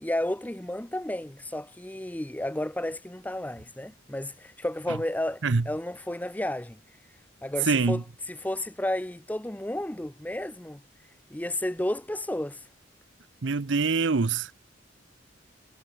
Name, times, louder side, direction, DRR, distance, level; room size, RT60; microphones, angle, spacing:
voice 1, 0.0-6.8 7.4-8.0 8.3-10.8 11.3-12.6, left 1 dB, 10° left, 0.7 m, -32 dB
voice 2, 7.7-8.0 13.4-14.5, right 4 dB, 70° right, 0.7 m, -24 dB
head